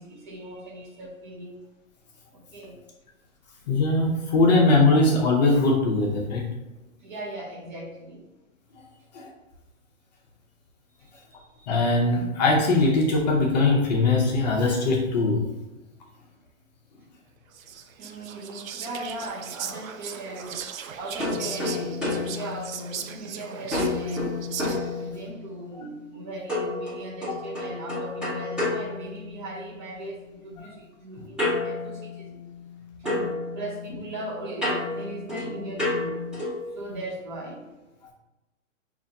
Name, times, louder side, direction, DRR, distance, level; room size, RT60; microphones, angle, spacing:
voice 1, 0.0-1.6 2.3-2.8 7.0-8.2 11.0-11.7 18.0-24.5 25.0-32.4 33.0-36.2 36.8-37.7, right 2 dB, 35° right, -1 dB, 0.8 m, -38 dB
voice 2, 3.7-6.5 9.1-9.3 11.7-15.4, left 2 dB, 35° left, -2 dB, 0.7 m, -21 dB
Whispering, 17.5-25.1, right 8 dB, 85° right, 0.5 m, -38 dB
sound 1, 21.2-23.3 23.7-25.5 26.5-29.7 31.4-32.8 33.0-36.7, left 2 dB, ahead, 0.7 m, -30 dB
5.2 x 2.5 x 2.7 m, 1.0 s
hypercardioid pair, 150°, 40 cm